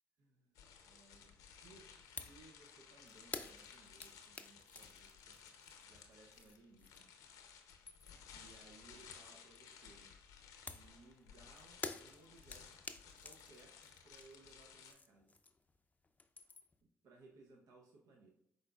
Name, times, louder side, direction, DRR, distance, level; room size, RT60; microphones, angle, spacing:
voice 1, 0.2-5.4 5.8-7.1 8.1-10.1 10.6-12.8 13.2-13.8 14.0-15.4 17.0-18.3, right 3 dB, 80° right, 0 dB, 0.7 m, -63 dB
sound 1, 0.5-14.9, left 7 dB, 90° left, 0.6 m, -58 dB
sound 2, 2.2-2.4 2.7-7.2 7.5-8.3 10.7-15.8 16.0-16.8, left 3 dB, 25° left, 0.4 m, -50 dB
5.0 x 3.9 x 2.3 m, 0.70 s
supercardioid pair, 55°, 6 cm